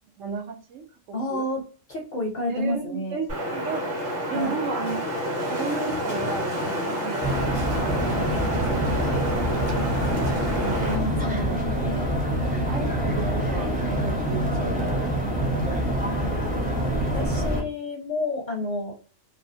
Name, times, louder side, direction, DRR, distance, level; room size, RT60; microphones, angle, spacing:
voice 1, 0.2-1.4 2.5-3.8 4.3-5.0 5.5-7.3 7.6-10.8 12.6-13.7 14.0-14.5 15.5-16.3, right 5 dB, 80° right, 6 dB, 0.9 m, -35 dB
voice 2, 1.1-1.6 1.9-3.2 4.3-4.6 10.9-12.1 17.1-18.9, left 2 dB, 55° left, 1 dB, 0.5 m, -30 dB
Wind, 3.3-11.0, equal, 55° right, 1.0 m, -29 dB
sound 1, 7.2-17.6, right 1 dB, 10° right, 0.4 m, -25 dB
2.6 x 2.1 x 2.6 m, 0.38 s
omnidirectional pair, 1.3 m